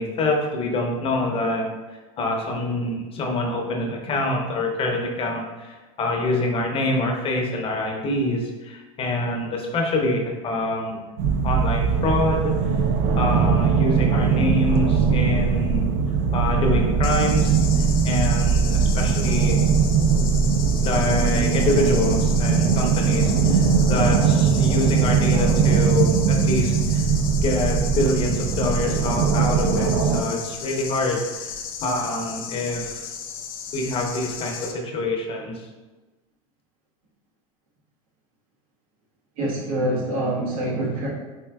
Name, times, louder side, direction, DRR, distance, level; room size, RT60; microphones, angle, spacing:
voice 1, 0.0-1.7 2.2-11.0 11.4-12.7 13.2-15.9 16.3-19.6 20.8-23.6 23.9-27.0 27.4-33.0 33.7-35.6, left 2 dB, 35° left, 1 dB, 0.6 m, -26 dB
sound 1, 11.2-30.2, right 6 dB, 55° right, 0.4 m, -20 dB
sound 2, 17.0-34.7, left 7 dB, 80° left, 0.5 m, -35 dB
voice 2, 39.4-41.1, right 1 dB, 85° right, -6 dB, 1.3 m, -25 dB
4.3 x 2.6 x 2.3 m, 1.2 s
supercardioid pair, 110°, 18 cm